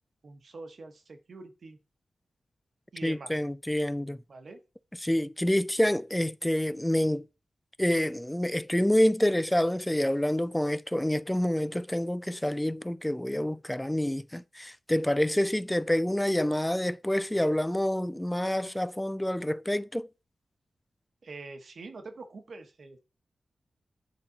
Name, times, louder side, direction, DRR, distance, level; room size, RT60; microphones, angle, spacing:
voice 1, 0.2-1.8 2.9-3.3 4.3-4.6 21.2-23.0, right 3 dB, 60° right, 1.1 m, -44 dB
voice 2, 3.0-4.2 5.0-7.3 7.8-20.1, left 1 dB, 10° left, 0.3 m, -27 dB
8.4 x 3.9 x 4.0 m
wide cardioid pair, 85°, 0 cm